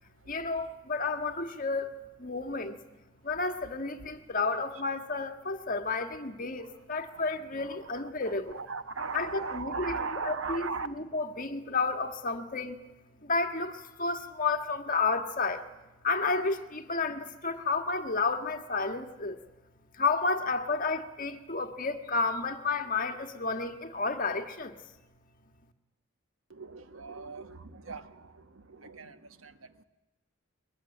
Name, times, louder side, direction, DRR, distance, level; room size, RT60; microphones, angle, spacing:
voice 1, 0.3-2.8 3.2-8.6 9.1-12.8 13.2-15.6 16.0-19.4 19.9-24.8, left 3 dB, 40° left, 1.7 m, -31 dB
voice 2, 8.7-10.9 26.5-29.5, right 4 dB, 85° right, 1.4 m, -38 dB
22.5 x 20.0 x 10.0 m
head